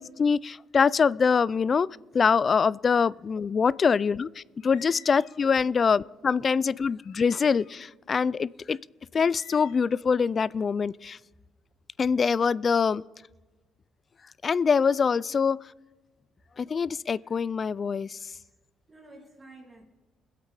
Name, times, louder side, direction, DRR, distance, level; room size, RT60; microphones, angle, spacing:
voice 1, 0.0-1.9 2.1-4.3 4.6-7.6 8.1-8.8 9.1-11.2 12.0-13.0 14.4-15.6 16.6-18.2, left 5 dB, 40° left, 22 dB, 0.3 m, -24 dB
sound 1, 4.6-5.5 6.0-6.1 7.0-7.8 8.6-8.7 9.1-10.0, left 6 dB, 85° left, 1.5 m, -53 dB
voice 2, 10.4-10.9 12.2-12.3 12.6-13.1 14.7-15.4 18.3-18.5 18.9-19.8, equal, 25° right, 1 dB, 2.6 m, -51 dB
21.0 x 8.3 x 4.8 m, 1.2 s
cardioid pair, 95°, 0 cm